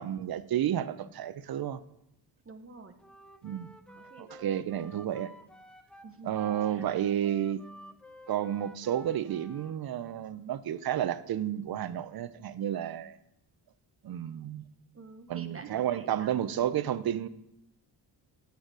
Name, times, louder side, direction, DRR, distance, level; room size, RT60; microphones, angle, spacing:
voice 1, 0.0-1.8 3.4-3.7 4.2-5.3 6.2-7.6 8.3-13.2 14.0-14.7 15.3-17.3, right 10 dB, 55° right, 0.6 m, -31 dB
voice 2, 2.4-2.9 3.9-4.8 6.0-6.4 6.7-6.9 14.9-16.7, right 4 dB, 30° right, 0.9 m, -49 dB
Wind instrument woodwind instrument, 3.0-9.8, equal, ahead, 0.5 m, -52 dB
9.5 x 6.5 x 4.7 m
cardioid pair, 70°, 44 cm